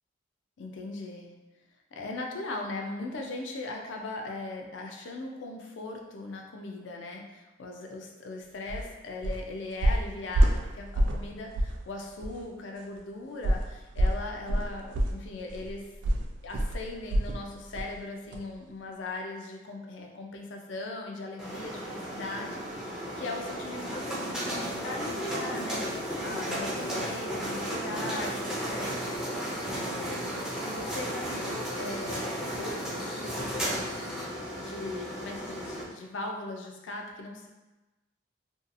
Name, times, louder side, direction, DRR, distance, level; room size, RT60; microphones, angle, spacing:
voice 1, 0.6-1.3 1.9-15.9 16.4-29.0 29.7-30.3 30.6-32.3 32.6-34.0 34.6-37.5, left 2 dB, 80° left, 1 dB, 0.4 m, -39 dB
sound 1, 8.7-8.9 9.2-9.5 9.8-11.3 11.5-11.8 12.2-12.3 13.4-17.4 17.7-18.0 18.3-18.4, right 1 dB, 75° right, 0.3 m, -26 dB
sound 2, 21.4-35.8, equal, 5° right, 0.4 m, -34 dB
2.7 x 2.3 x 2.5 m, 1.1 s
head